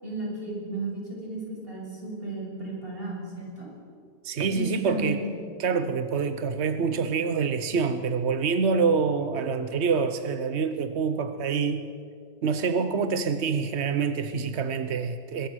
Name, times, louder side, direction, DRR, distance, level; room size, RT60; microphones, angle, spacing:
voice 1, 0.0-3.7 4.5-5.3, right 2 dB, 30° right, -2 dB, 6.5 m, -34 dB
voice 2, 4.2-5.2 5.6-11.9 12.4-15.5, right 5 dB, 50° right, 10 dB, 0.8 m, -26 dB
23.5 x 21.0 x 6.3 m, 2.4 s
omnidirectional pair, 2.1 m